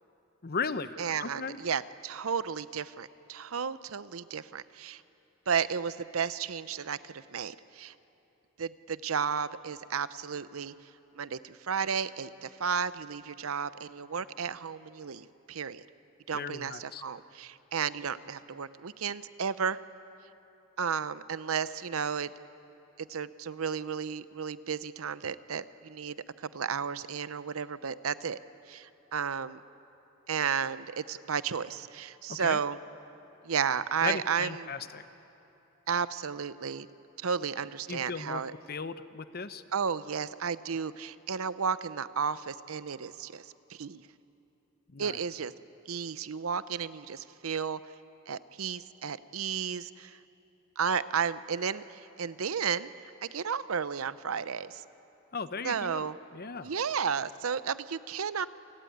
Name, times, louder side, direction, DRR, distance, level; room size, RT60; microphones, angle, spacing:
voice 1, 0.4-0.9 1.2-1.6 16.3-17.0 32.3-32.6 34.0-35.1 37.9-38.4 38.7-39.6 44.9-45.2 55.3-56.7, left 5 dB, 45° left, 12 dB, 0.9 m, -36 dB
voice 2, 1.0-5.0 5.5-7.9 8.6-10.7 11.1-15.8 16.3-19.8 20.8-22.3 23.0-28.4 28.7-29.6 30.3-32.8 33.4-34.7 35.9-36.9 37.2-38.5 39.7-44.0 45.0-45.5 45.9-47.8 48.3-50.2 50.8-52.9 53.2-54.8 55.6-56.2 56.6-58.5, right 6 dB, 90° right, 15 dB, 0.7 m, -33 dB
28.5 x 18.0 x 9.3 m, 3.0 s
head